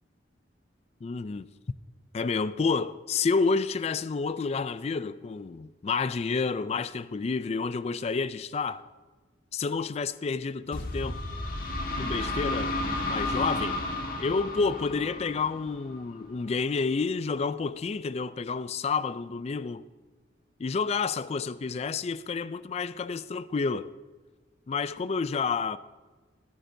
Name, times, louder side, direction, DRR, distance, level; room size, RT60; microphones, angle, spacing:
voice 1, 1.0-1.5 2.1-8.8 9.5-11.2 12.0-13.8 14.2-19.9 20.6-23.9 24.7-25.8, left 4 dB, 35° left, 0.3 m, -29 dB
sound 1, 10.7-16.4, left 2 dB, 50° left, 1.5 m, -32 dB
19.5 x 10.0 x 2.7 m
head